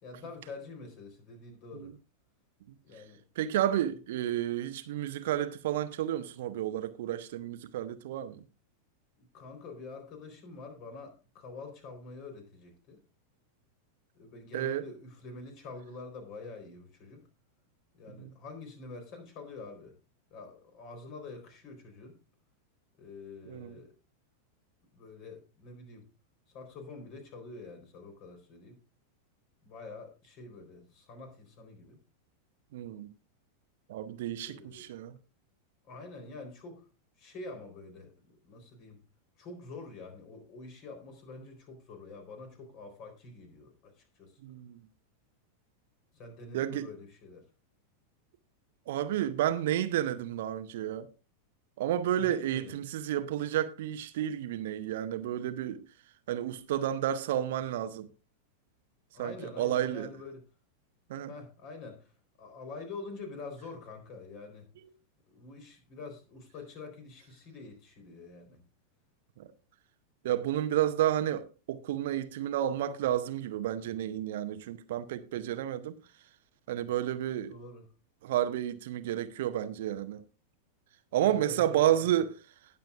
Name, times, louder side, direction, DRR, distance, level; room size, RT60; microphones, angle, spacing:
voice 1, 0.0-1.9 2.8-3.2 9.2-13.0 14.1-17.3 17.9-19.9 20.3-22.2 22.9-23.9 24.9-26.0 26.5-28.8 29.6-32.0 34.4-34.9 35.9-36.9 37.2-39.0 39.4-44.4 46.1-47.4 52.2-52.8 59.1-60.4 61.3-62.1 62.4-64.7 65.3-68.6 77.5-77.8 81.1-82.2, left 3 dB, 40° left, 4.1 m, -46 dB
voice 2, 3.4-8.4 14.5-14.8 18.2-18.3 23.5-23.7 32.7-33.1 33.9-35.2 44.4-44.9 46.5-46.9 48.9-51.1 51.8-55.8 56.3-58.1 59.2-60.1 61.1-61.3 69.4-69.5 70.2-76.0 76.7-77.5 78.2-80.2 81.1-82.3, right 11 dB, 55° right, 0.8 m, -31 dB
19.0 x 7.3 x 2.5 m
figure-of-eight pair, 90°, 0 cm